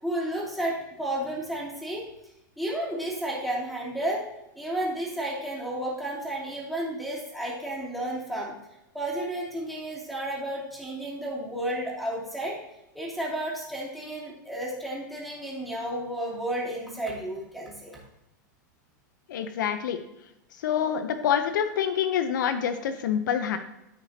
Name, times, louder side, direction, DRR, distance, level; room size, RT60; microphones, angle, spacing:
voice 1, 0.0-2.0 2.6-4.3 4.5-8.5 8.9-12.6 12.9-18.0, right 1 dB, ahead, -5 dB, 2.8 m, -32 dB
voice 2, 19.3-20.0 20.6-23.6, left 8 dB, 75° left, 9 dB, 0.8 m, -26 dB
14.0 x 4.9 x 2.9 m, 0.91 s
supercardioid pair, 145°, 10 cm